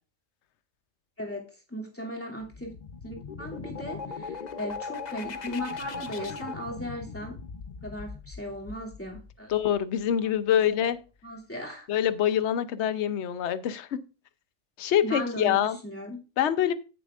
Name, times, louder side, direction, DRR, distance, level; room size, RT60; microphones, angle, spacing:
voice 1, 1.2-2.8 3.0-7.4 7.8-9.5 10.8-10.9 11.2-11.9 15.0-16.2, equal, 10° left, -3 dB, 2.7 m, -37 dB
sound 1, 2.4-10.0, left 5 dB, 45° left, 0.6 m, -39 dB
voice 2, 9.5-11.0 11.9-14.0 14.8-15.8 16.4-16.7, left 10 dB, 65° left, 13 dB, 1.0 m, -25 dB
14.5 x 6.9 x 2.5 m, 0.32 s
omnidirectional pair, 1.4 m